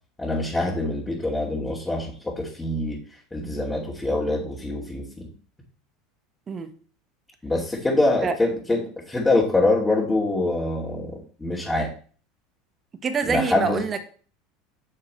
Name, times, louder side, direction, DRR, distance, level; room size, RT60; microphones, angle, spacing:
voice 1, 0.2-3.0 3.3-5.3 7.4-8.8 9.1-11.9 13.3-13.8, left 2 dB, 10° left, -5 dB, 2.5 m, -24 dB
voice 2, 13.0-14.0, right 5 dB, 30° right, 10 dB, 1.2 m, -25 dB
9.2 x 6.6 x 3.2 m, 0.42 s
hypercardioid pair, 80°, 0 cm